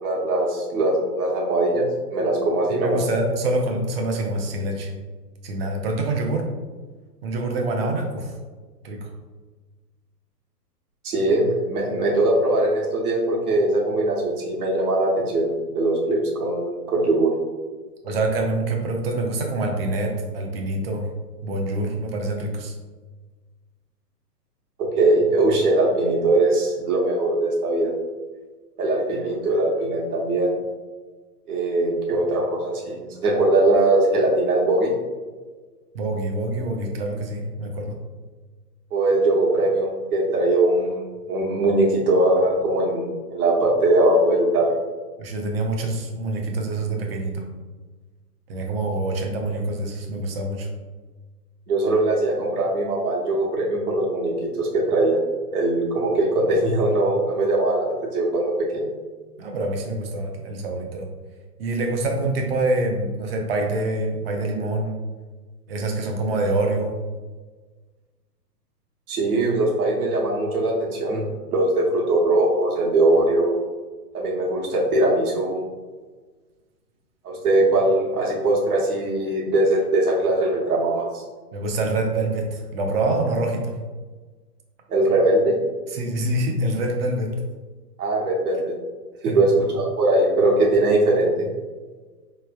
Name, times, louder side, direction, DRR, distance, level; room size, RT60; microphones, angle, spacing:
voice 1, 0.0-3.0 7.5-7.6 11.0-17.3 24.8-27.9 28.8-30.6 31.5-34.9 38.9-41.0 41.3-44.8 51.7-55.2 55.5-58.9 69.1-71.2 71.5-73.5 74.1-75.6 77.2-81.2 84.9-85.6 88.0-88.7 89.2-91.5, right 2 dB, 65° right, -3 dB, 1.1 m, -21 dB
voice 2, 2.7-4.9 5.4-6.5 7.2-8.3 8.8-9.1 18.0-21.1 21.4-22.7 35.9-38.0 45.2-47.4 48.5-50.7 59.4-61.1 61.6-65.0 65.7-66.9 81.5-83.8 85.9-87.3 89.2-89.4, right 2 dB, 40° right, 2 dB, 0.6 m, -26 dB
4.2 x 3.2 x 2.2 m, 1.4 s
hypercardioid pair, 130°, 49 cm